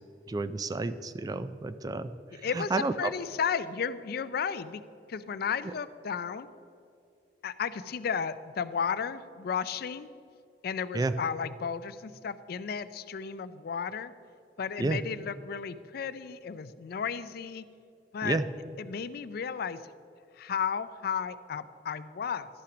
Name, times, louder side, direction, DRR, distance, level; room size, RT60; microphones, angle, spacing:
voice 1, 0.3-3.1 10.9-11.1 14.8-15.0 18.2-18.5, right 3 dB, 20° right, 13 dB, 0.3 m, -31 dB
voice 2, 3.0-4.8 5.1-6.5 7.4-10.1 10.6-14.1 14.6-17.6 18.1-18.4 18.8-19.8 20.4-22.5, left 6 dB, 60° left, 14 dB, 0.4 m, -33 dB
11.5 x 5.8 x 6.0 m, 2.4 s
head